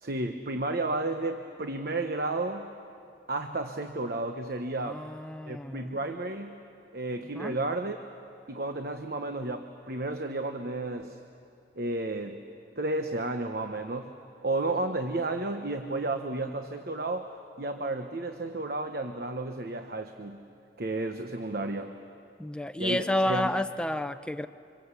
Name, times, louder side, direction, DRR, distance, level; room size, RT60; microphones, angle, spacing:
voice 1, 0.0-2.7 3.3-5.0 5.5-6.6 6.9-8.0 8.5-11.2 11.7-12.4 12.8-14.1 14.4-17.3 17.6-20.4 20.8-21.9 22.8-23.5, right 2 dB, 55° right, 6 dB, 1.1 m, -32 dB
voice 2, 4.8-6.0 7.3-7.5 22.4-24.5, left 1 dB, 5° left, 9 dB, 0.7 m, -30 dB
27.0 x 26.0 x 8.3 m, 2.6 s
head